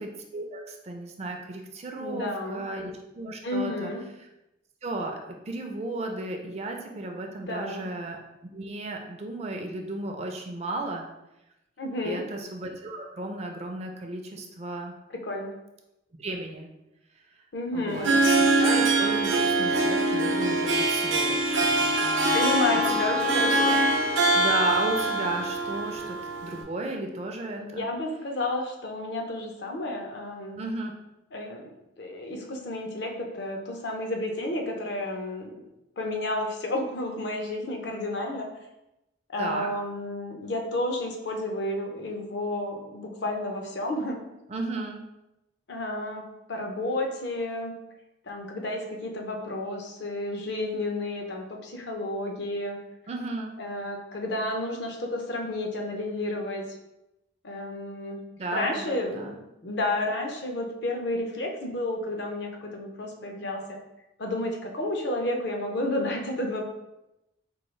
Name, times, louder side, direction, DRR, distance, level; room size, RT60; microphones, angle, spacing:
voice 1, 0.0-3.9 4.8-5.2 5.5-8.2 8.5-11.1 12.0-14.9 16.2-16.7 17.7-18.1 18.6-22.4 22.7-22.8 24.3-26.2 26.4-27.9 30.5-30.9 39.4-39.7 44.5-45.0 53.1-53.6 58.4-59.4, right 2 dB, 35° right, 3 dB, 0.4 m, -34 dB
voice 2, 2.0-2.6 3.4-4.0 7.4-7.8 11.8-12.2 15.1-15.5 17.5-18.2 22.3-23.9 27.6-30.6 31.3-31.6 32.0-35.5 36.0-38.5 39.3-44.2 45.7-46.2 46.5-47.7 48.3-52.8 53.6-56.7 57.4-58.2 58.5-59.3 59.6-63.8 64.2-66.6, left 1 dB, 60° left, 2 dB, 0.6 m, -31 dB
Harp, 17.9-26.6, right 2 dB, 80° right, 0.6 m, -23 dB
4.5 x 2.3 x 3.1 m, 0.92 s
head